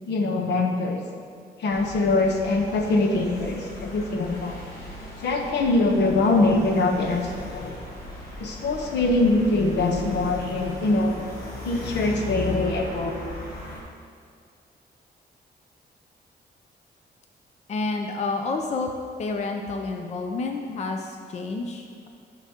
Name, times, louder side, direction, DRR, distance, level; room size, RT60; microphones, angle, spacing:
voice 1, 0.1-1.0 1.6-4.6 5.2-7.7 8.4-11.2 11.6-13.3, left 2 dB, 85° left, 2 dB, 1.0 m, -23 dB
sound 1, 1.7-13.8, left 1 dB, 65° left, 1.4 m, -38 dB
voice 2, 17.7-18.9 19.2-22.1, left 3 dB, 40° left, 3 dB, 0.5 m, -29 dB
10.5 x 6.0 x 2.9 m, 2.3 s
wide cardioid pair, 155°, 17 cm